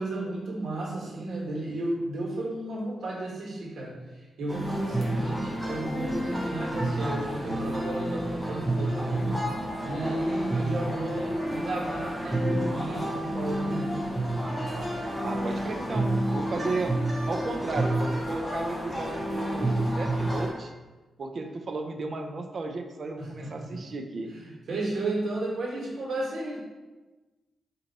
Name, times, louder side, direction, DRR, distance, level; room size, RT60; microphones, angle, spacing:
voice 1, 0.0-4.0 4.4-9.4 9.8-14.0 16.5-16.8 23.2-23.8 24.3-26.6, right 2 dB, 65° right, -4 dB, 1.4 m, -33 dB
sound 1, 4.5-20.5, right 1 dB, 5° left, 0.9 m, -29 dB
voice 2, 15.2-16.9 17.3-20.7 21.2-24.3, right 3 dB, 45° right, 4 dB, 0.4 m, -34 dB
4.5 x 2.7 x 4.0 m, 1.2 s
wide cardioid pair, 135°, 0 cm